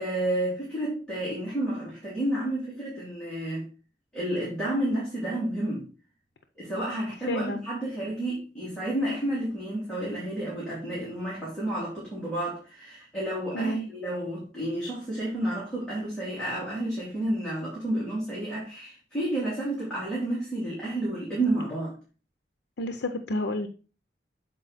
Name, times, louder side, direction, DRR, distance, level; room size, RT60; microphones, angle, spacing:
voice 1, 0.0-3.7 4.1-5.9 6.6-21.9, right 1 dB, 5° left, -9 dB, 2.8 m, -30 dB
voice 2, 7.2-7.6 13.5-13.9 22.8-23.7, left 1 dB, 85° left, 7 dB, 0.6 m, -30 dB
7.6 x 4.5 x 4.1 m, 0.36 s
head